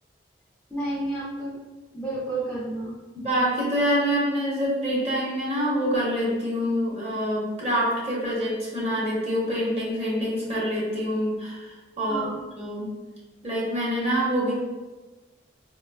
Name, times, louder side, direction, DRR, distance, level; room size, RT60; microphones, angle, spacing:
voice 1, 0.7-1.6 1.9-2.9 12.0-12.4, right 2 dB, 5° left, -7 dB, 0.4 m, -31 dB
voice 2, 3.1-12.2 12.6-12.9 13.4-14.5, equal, 35° right, -6 dB, 0.9 m, -26 dB
4.6 x 2.2 x 2.3 m, 1.2 s
head